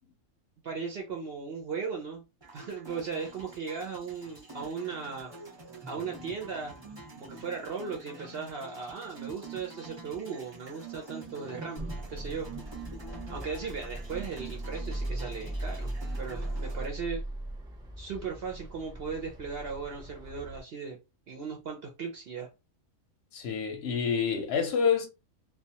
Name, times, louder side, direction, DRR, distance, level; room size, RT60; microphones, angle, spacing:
voice 1, 0.6-2.2 2.5-5.3 5.9-6.8 7.1-12.5 13.3-17.2 18.0-21.0 21.3-22.5, right 5 dB, 60° right, 0.6 m, -37 dB
sound 1, 2.4-16.9, right 3 dB, 20° right, 0.9 m, -46 dB
sound 2, 11.8-20.6, right 1 dB, 5° right, 0.4 m, -38 dB
voice 2, 23.3-25.1, left 6 dB, 60° left, 0.7 m, -27 dB
2.3 x 2.3 x 2.7 m
omnidirectional pair, 1.5 m